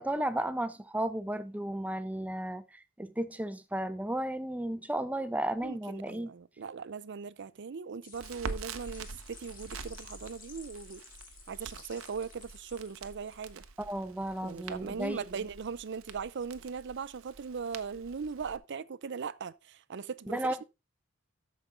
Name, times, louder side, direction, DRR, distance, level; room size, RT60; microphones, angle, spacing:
voice 1, 0.0-2.6 3.0-6.3 13.8-15.2 20.3-20.6, right 1 dB, 5° right, 0.6 m, -34 dB
voice 2, 5.6-11.0 11.5-13.6 14.4-20.6, right 6 dB, 60° right, 0.5 m, -39 dB
sound 1, 8.0-13.5, left 5 dB, 40° left, 2.2 m, -54 dB
Crackle, 8.1-18.6, right 4 dB, 75° right, 0.9 m, -46 dB
13.0 x 5.2 x 3.7 m
head